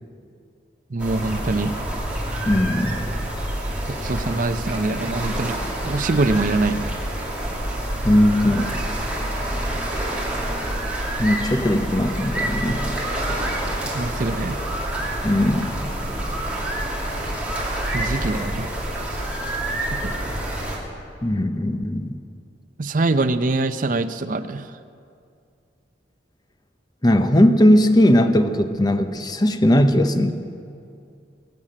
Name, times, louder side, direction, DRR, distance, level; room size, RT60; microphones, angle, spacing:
voice 1, 0.9-1.8 4.0-5.6 5.8-6.9 13.9-14.6 17.9-18.8 19.9-20.4 22.8-24.6, right 2 dB, 45° right, 10 dB, 0.6 m, -24 dB
sound 1, 1.0-20.8, right 1 dB, 5° right, 2.6 m, -27 dB
voice 2, 2.5-3.0 8.0-8.8 11.2-12.9 15.2-15.7 21.2-22.2 27.0-30.3, left 1 dB, 20° left, 8 dB, 0.7 m, -18 dB
22.0 x 7.4 x 8.9 m, 2.4 s
head